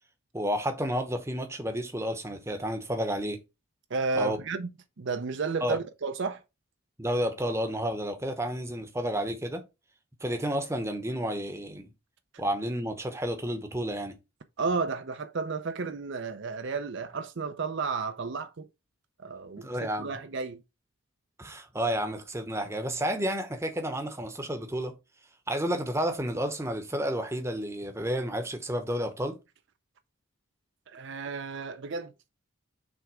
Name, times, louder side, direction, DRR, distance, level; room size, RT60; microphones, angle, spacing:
voice 1, 0.3-3.4 4.2-4.4 5.6-5.8 7.0-9.6 10.2-11.9 12.4-14.2 19.6-20.1 21.4-24.9 25.5-29.4, equal, 10° right, 0.9 m, -31 dB
voice 2, 3.9-4.7 5.0-6.4 14.6-18.7 19.2-20.6 30.9-32.1, right 4 dB, 55° right, 0.5 m, -32 dB
6.0 x 3.5 x 4.9 m
head